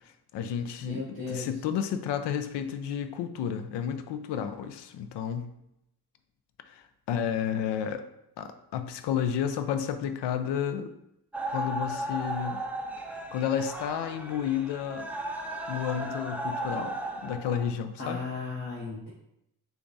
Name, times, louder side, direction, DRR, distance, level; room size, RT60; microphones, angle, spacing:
voice 1, 0.0-5.5 6.7-8.1 8.4-10.9 11.5-12.6 13.1-15.1 15.7-18.3, left 8 dB, 90° left, 9 dB, 0.5 m, -31 dB
voice 2, 0.8-1.5 18.0-19.1, left 4 dB, 30° left, -8 dB, 1.0 m, -35 dB
sound 1, 11.3-17.7, right 1 dB, 5° right, 0.3 m, -35 dB
6.7 x 2.4 x 2.6 m, 0.83 s
cardioid pair, 125°, 40 cm